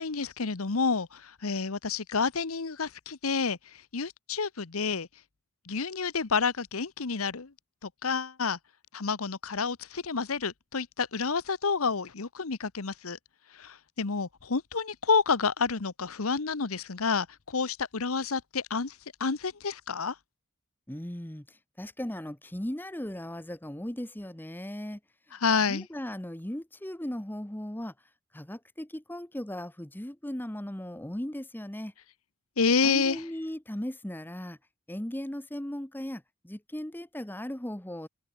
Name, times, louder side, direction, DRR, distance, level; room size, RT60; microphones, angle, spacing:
voice 1, 0.0-3.6 3.9-5.1 5.7-7.5 8.0-8.6 8.9-13.2 13.6-18.9 19.2-20.1 25.3-25.9 32.6-33.2, left 5 dB, 85° left, 1.1 m, -29 dB
voice 2, 20.9-21.4 21.8-25.0 25.6-27.9 28.3-31.9 32.8-34.6 34.9-38.1, left 1 dB, 10° left, 1.0 m, -37 dB
head